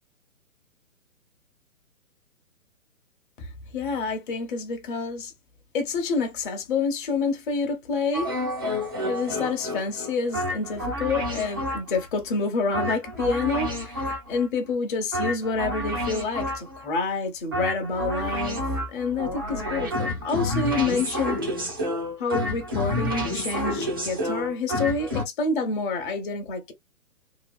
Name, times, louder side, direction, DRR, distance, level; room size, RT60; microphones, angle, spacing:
voice 1, 3.4-5.3 5.7-8.3 8.7-21.4 22.2-26.7, left 4 dB, 35° left, 0.9 m, -28 dB
sound 1, 8.1-12.1 12.7-14.5 15.1-16.9 17.5-25.2, left 1 dB, 15° right, 0.4 m, -29 dB
2.9 x 2.4 x 2.3 m
figure-of-eight pair, 135°, 43 cm